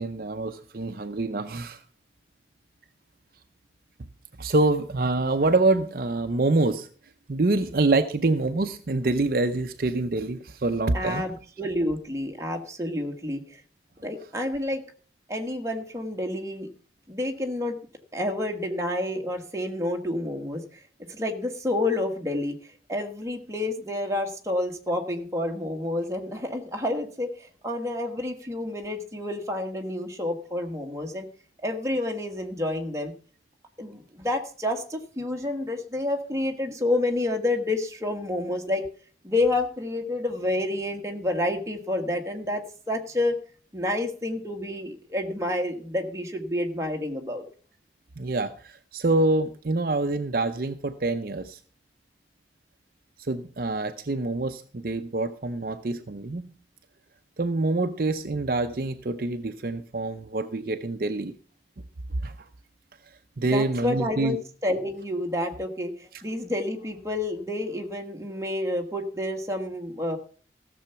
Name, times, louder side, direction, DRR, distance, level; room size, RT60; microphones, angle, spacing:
voice 1, 0.0-1.8 4.4-6.9 7.3-11.2 48.2-51.6 53.3-56.5 57.4-61.3 62.2-62.3 63.4-64.4, right 2 dB, 50° right, 9 dB, 0.6 m, -26 dB
voice 2, 10.9-13.6 14.0-14.8 15.3-16.7 17.1-17.8 18.1-20.6 21.1-22.5 22.9-31.3 31.6-33.1 33.8-38.8 39.2-43.4 43.7-47.4 63.4-64.4 64.6-70.2, left 1 dB, 15° right, 2 dB, 1.5 m, -29 dB
15.0 x 7.0 x 5.7 m, 0.42 s
head